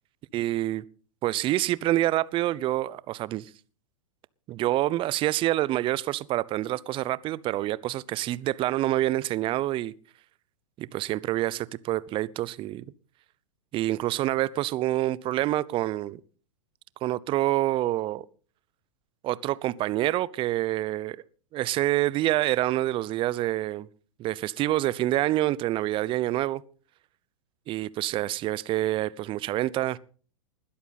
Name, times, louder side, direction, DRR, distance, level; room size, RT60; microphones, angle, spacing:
voice 1, 0.3-0.8 1.2-3.5 4.5-9.9 10.8-12.8 13.7-16.2 17.0-18.2 19.2-21.2 21.5-23.9 24.2-26.6 27.7-30.0, right 15 dB, 30° right, 0.8 m, -27 dB
20.5 x 13.0 x 4.2 m
hypercardioid pair, 105°, 16 cm